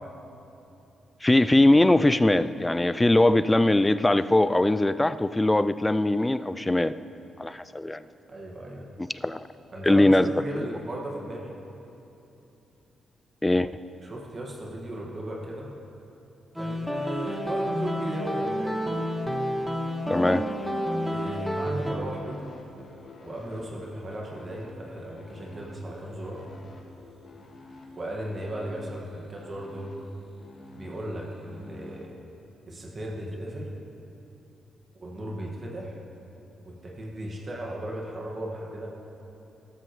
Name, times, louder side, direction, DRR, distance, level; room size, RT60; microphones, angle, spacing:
voice 1, 1.2-6.9 7.4-8.0 9.2-9.4 9.8-10.3 10.6-10.7 13.4-13.7 20.1-20.5, left 1 dB, 15° left, 14 dB, 0.4 m, -21 dB
voice 2, 8.3-8.9 9.7-11.5 14.0-15.7 16.5-18.9 21.0-22.5 23.2-26.4 27.9-29.9 30.7-32.1 32.7-33.7 35.0-35.9 36.7-38.9, right 1 dB, 45° right, -2 dB, 1.9 m, -36 dB
sound 1, 16.6-22.0, equal, ahead, 1.5 m, -29 dB
sound 2, 21.8-32.0, left 3 dB, 60° left, 2.0 m, -49 dB
13.5 x 12.5 x 3.2 m, 2.9 s
supercardioid pair, 45°, 0 cm